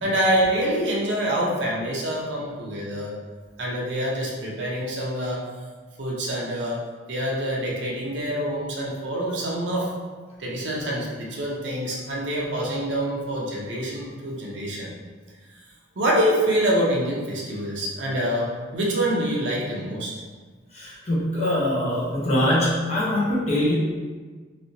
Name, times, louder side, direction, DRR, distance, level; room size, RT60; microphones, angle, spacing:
voice 1, 0.0-3.1 3.6-5.4 6.0-6.8 7.1-9.9 10.4-14.9 16.0-20.1, right 1 dB, 70° right, -4 dB, 0.7 m, -26 dB
voice 2, 20.8-23.8, left 1 dB, 35° left, -6 dB, 0.8 m, -23 dB
3.2 x 2.7 x 2.7 m, 1.4 s
head